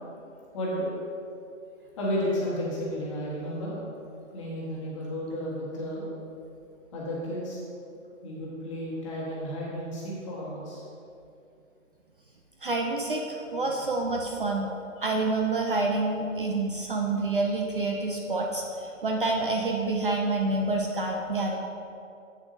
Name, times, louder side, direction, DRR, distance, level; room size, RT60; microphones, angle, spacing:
voice 1, 0.5-0.9 2.0-3.8 4.3-6.1 6.9-7.6 8.2-10.8 15.0-15.1, equal, 25° left, -6 dB, 1.4 m, -32 dB
voice 2, 12.6-14.7 15.0-21.6, right 2 dB, 45° right, 1 dB, 0.5 m, -28 dB
8.1 x 7.2 x 2.7 m, 2.6 s
hypercardioid pair, 165°, 40 cm